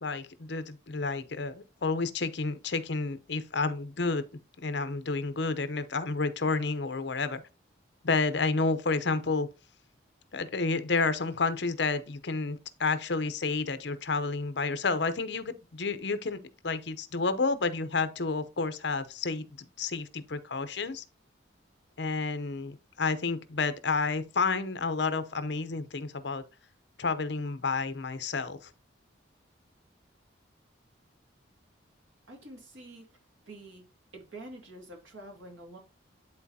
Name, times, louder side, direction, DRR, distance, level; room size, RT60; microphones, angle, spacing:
voice 1, 0.0-4.2 4.6-7.4 8.0-9.5 10.3-16.4 16.6-21.0 22.0-26.4 27.0-28.7, left 4 dB, 65° left, 0.8 m, -30 dB
voice 2, 32.3-33.1 33.5-33.9 34.1-35.8, right 1 dB, 90° right, 2.3 m, -47 dB
11.0 x 4.0 x 2.8 m
head